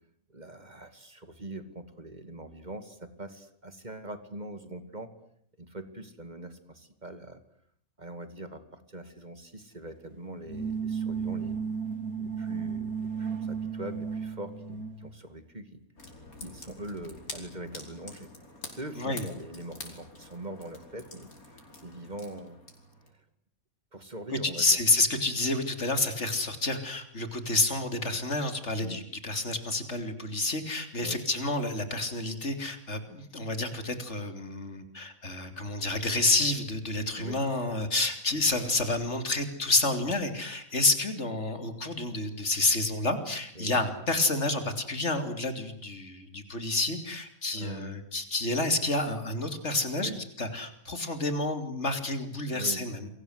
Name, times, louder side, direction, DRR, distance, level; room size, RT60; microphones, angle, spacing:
voice 1, 0.3-5.1 5.6-7.4 8.0-11.6 12.2-15.8 16.4-18.3 18.7-22.6 23.9-24.8 28.8-29.0 31.0-31.2 37.2-37.4 43.6-43.8 47.5-48.0 50.0-50.2 52.5-52.8, right 1 dB, 30° right, 10 dB, 2.4 m, -42 dB
sound 1, 10.4-15.2, right 6 dB, 85° right, 3.2 m, -34 dB
sound 2, 16.0-23.1, left 2 dB, 85° left, 5.6 m, -47 dB
voice 2, 24.6-50.1 50.4-53.1, left 2 dB, 50° left, 8 dB, 3.5 m, -29 dB
29.0 x 23.0 x 8.1 m, 0.66 s
omnidirectional pair, 1.5 m